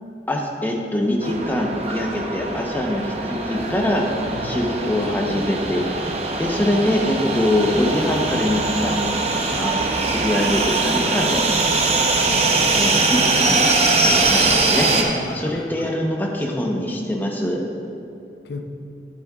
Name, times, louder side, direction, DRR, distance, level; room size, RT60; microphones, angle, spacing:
voice 1, 0.3-4.1 4.4-6.0 6.4-9.1 9.6-9.8 10.1-11.4 12.8-17.6, left 1 dB, 10° left, 0 dB, 0.8 m, -23 dB
sound 1, 1.2-15.0, right 3 dB, 35° right, 0.7 m, -22 dB
sound 2, 7.8-14.6, right 1 dB, 70° right, 0.8 m, -39 dB
voice 2, 12.3-13.0 15.2-15.9 18.4-18.6, left 3 dB, 65° left, 4 dB, 0.7 m, -35 dB
11.0 x 8.5 x 2.4 m, 2.7 s
head